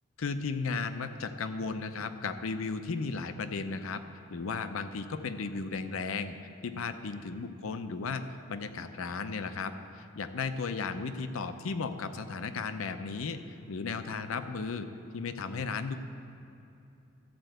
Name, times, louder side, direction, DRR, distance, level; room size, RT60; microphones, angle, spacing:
voice 1, 0.2-4.0 4.3-6.3 6.6-13.4 13.7-14.9 15.1-16.0, left 4 dB, 85° left, 10 dB, 0.6 m, -35 dB
13.5 x 4.5 x 7.7 m, 2.7 s
head